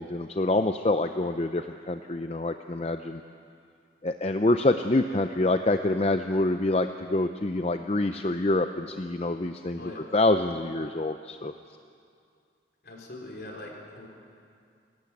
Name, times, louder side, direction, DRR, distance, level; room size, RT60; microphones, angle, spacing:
voice 1, 0.0-3.2 4.0-9.8 10.1-11.5, left 2 dB, 35° left, 7 dB, 0.5 m, -26 dB
voice 2, 12.8-14.1, left 1 dB, 60° left, 0 dB, 3.9 m, -42 dB
28.5 x 12.5 x 8.5 m, 2.4 s
head